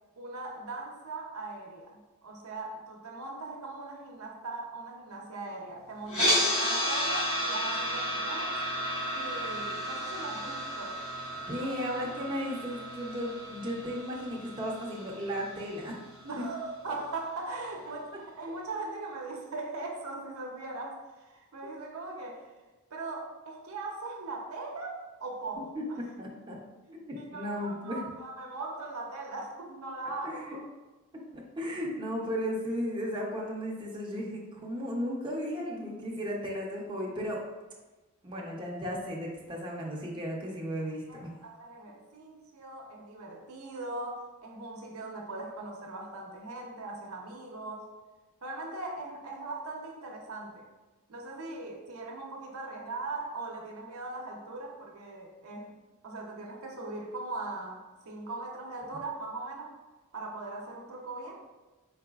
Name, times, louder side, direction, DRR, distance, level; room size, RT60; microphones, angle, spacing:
voice 1, 0.2-8.6 9.1-11.0 11.6-11.7 16.2-22.5 22.9-26.0 26.9-30.6 41.1-47.9 48.4-50.7 51.1-55.8 56.0-59.8 60.1-61.4, right 2 dB, 75° right, 0 dB, 0.7 m, -40 dB
sound 1, 6.1-16.2, equal, 75° left, 1.3 m, -32 dB
voice 2, 11.5-15.9 25.7-25.8 26.2-26.6 27.1-28.0 30.2-30.6 31.3-37.4 38.2-41.3, equal, 20° right, -3 dB, 0.6 m, -35 dB
4.1 x 3.9 x 2.4 m, 1.1 s
head